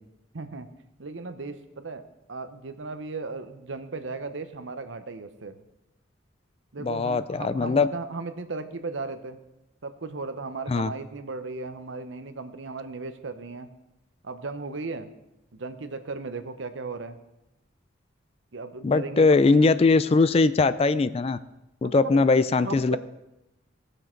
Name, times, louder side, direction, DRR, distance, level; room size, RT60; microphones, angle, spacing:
voice 1, 0.3-0.7 1.0-5.5 6.7-9.4 9.8-13.7 14.2-15.1 15.5-17.2 18.5-19.7 21.8-22.2 22.6-23.0, right 3 dB, 75° right, 10 dB, 0.9 m, -36 dB
voice 2, 6.8-7.9 10.7-10.9 18.8-21.4 21.8-23.0, left 3 dB, 30° left, 14 dB, 0.3 m, -21 dB
17.5 x 6.5 x 4.5 m, 0.90 s
head